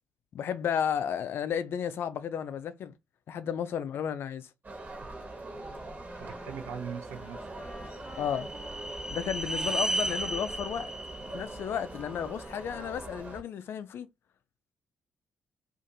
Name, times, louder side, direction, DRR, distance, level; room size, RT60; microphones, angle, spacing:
voice 1, 0.3-2.9 3.3-4.5 8.2-8.5 9.1-10.9 11.3-14.1, left 8 dB, 60° left, 0.3 m, -33 dB
sound 1, 4.6-13.4, right 2 dB, 40° right, 1.2 m, -43 dB
Wind instrument woodwind instrument, 5.6-12.9, left 1 dB, 15° left, 1.1 m, -52 dB
voice 2, 6.2-7.7 9.7-9.8, right 7 dB, 75° right, 0.6 m, -41 dB
sound 2, 7.4-12.6, right 1 dB, 10° right, 0.4 m, -35 dB
2.5 x 2.4 x 2.7 m
hypercardioid pair, 40°, 4 cm